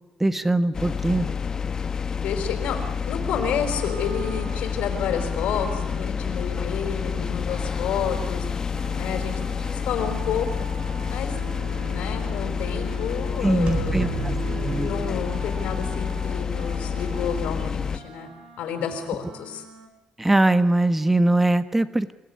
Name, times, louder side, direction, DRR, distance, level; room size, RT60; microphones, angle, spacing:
voice 1, 0.2-1.3 13.4-14.3 14.7-14.9 20.2-22.1, right 2 dB, 10° right, 11 dB, 1.5 m, -21 dB
sound 1, 0.7-18.0, left 6 dB, 30° left, 1.2 m, -28 dB
voice 2, 2.1-2.8 3.1-8.5 8.9-9.3 9.7-10.5 11.1-11.4 11.9-14.1 14.4-18.3 18.6-19.6, left 7 dB, 85° left, 5 dB, 4.6 m, -30 dB
sound 2, 3.6-13.6 14.0-19.9, right 8 dB, 85° right, 3.6 m, -43 dB
sound 3, 13.7-16.2, right 5 dB, 50° right, 4.2 m, -32 dB
29.0 x 17.5 x 9.7 m, 1.1 s
cardioid pair, 130°, 2 cm